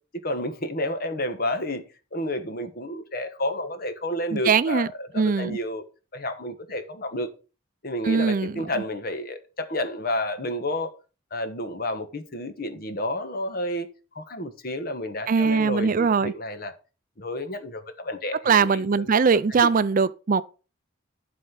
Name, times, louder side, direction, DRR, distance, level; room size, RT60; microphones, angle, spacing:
voice 1, 0.1-5.8 6.1-7.3 7.8-10.9 11.3-13.9 14.1-16.7 17.2-19.1 19.6-19.7, left 1 dB, 50° left, 1.3 m, -31 dB
voice 2, 4.3-4.9 5.1-5.6 8.0-8.7 15.3-16.3 18.4-20.4, right 5 dB, 40° right, 0.4 m, -21 dB
11.5 x 4.3 x 5.7 m
head